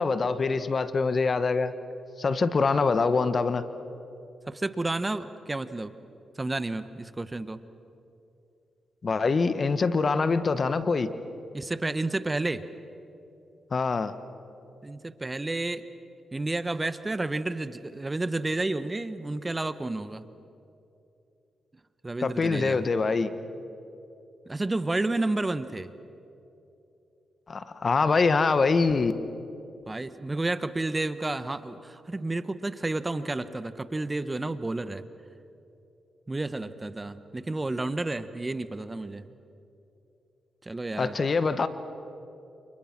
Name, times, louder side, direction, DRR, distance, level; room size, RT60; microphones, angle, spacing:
voice 1, 0.0-1.7 2.2-3.6 9.0-11.1 13.7-14.1 22.2-23.3 27.5-29.1 41.0-41.7, left 4 dB, 50° left, 12 dB, 1.4 m, -24 dB
voice 2, 4.5-5.9 6.4-7.6 11.5-12.6 14.8-15.8 16.3-20.3 22.0-22.8 24.5-25.9 29.9-35.0 36.3-39.3 40.6-41.2, right 2 dB, 25° right, 12 dB, 1.3 m, -31 dB
29.0 x 29.0 x 6.1 m, 2.8 s
supercardioid pair, 50°, 0 cm